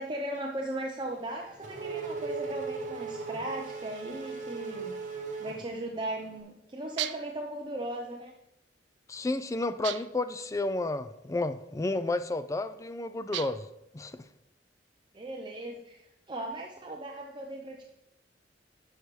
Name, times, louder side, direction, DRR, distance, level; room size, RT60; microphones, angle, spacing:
voice 1, 0.0-8.3 15.1-17.8, right 1 dB, 25° right, 0 dB, 0.6 m, -37 dB
Race car auto racing / Accelerating revving vroom, 1.0-6.3, right 4 dB, 45° right, 1.1 m, -38 dB
sound 1, 7.0-7.4 9.8-10.3 13.3-13.8, right 14 dB, 75° right, 0.3 m, -36 dB
voice 2, 9.1-13.7 13.9-14.2, left 2 dB, 15° left, 11 dB, 0.3 m, -31 dB
10.0 x 6.6 x 3.1 m, 0.84 s
head